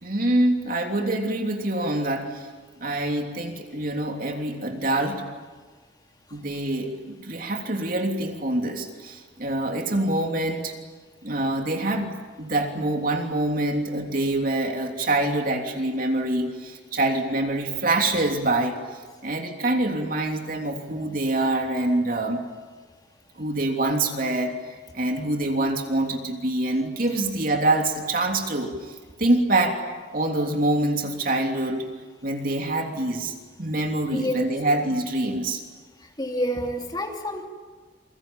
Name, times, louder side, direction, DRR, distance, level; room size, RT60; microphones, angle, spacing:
voice 1, 0.0-2.5 2.8-5.2 6.3-10.7 11.2-18.8 19.2-22.4 23.4-24.6 24.9-28.7 29.2-29.8 30.1-31.9 32.2-35.6, right 2 dB, 50° right, 3 dB, 3.2 m, -25 dB
voice 2, 34.1-34.5 36.0-37.4, equal, 20° left, 2 dB, 3.0 m, -28 dB
28.5 x 23.0 x 8.9 m, 1.4 s
head